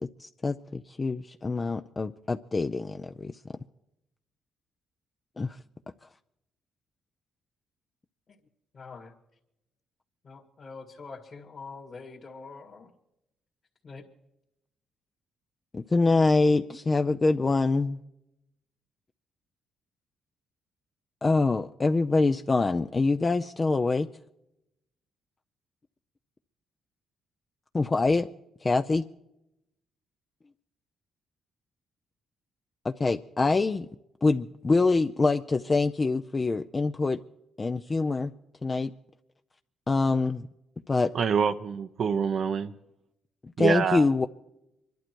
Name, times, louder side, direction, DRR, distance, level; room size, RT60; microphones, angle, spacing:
voice 1, 0.2-3.4 5.4-5.6 15.7-18.0 21.2-24.1 27.7-28.3 28.6-29.0 32.8-33.9 34.2-37.2 37.6-38.3 38.6-38.9 39.9-40.5 40.9-41.1 43.6-44.3, left 3 dB, 25° left, 0.5 m, -25 dB
voice 2, 8.7-9.1 10.2-12.9 13.8-14.1, left 4 dB, 45° left, 2.1 m, -44 dB
voice 3, 41.1-42.7 43.6-44.1, right 6 dB, 60° right, 0.7 m, -26 dB
24.5 x 11.5 x 4.6 m
cardioid pair, 90°, 0 cm